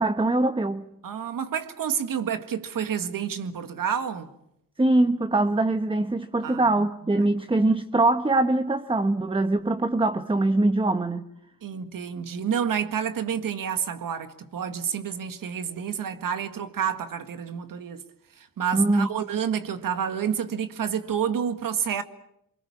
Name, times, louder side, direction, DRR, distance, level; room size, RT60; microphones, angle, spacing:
voice 1, 0.0-0.8 4.8-11.2 18.7-19.1, right 2 dB, 15° right, 1.2 m, -23 dB
voice 2, 1.0-4.3 6.4-6.9 7.2-7.3 11.6-18.0 18.4-22.0, right 8 dB, 65° right, 2.0 m, -29 dB
26.5 x 24.0 x 7.2 m
cardioid pair, 100°, 35 cm